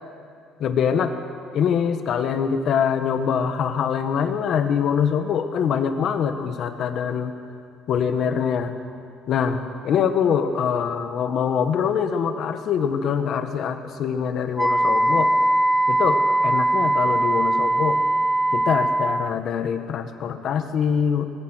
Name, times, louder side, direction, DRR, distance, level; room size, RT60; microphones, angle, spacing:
voice 1, 0.6-1.1 1.5-7.3 7.9-8.7 9.3-15.3 15.9-18.0 18.5-21.2, left 7 dB, 45° left, 7 dB, 1.6 m, -24 dB
Wind instrument woodwind instrument, 14.6-19.4, right 1 dB, ahead, 0.5 m, -20 dB
26.0 x 21.0 x 6.5 m, 2.3 s
cardioid pair, 175°, 0 cm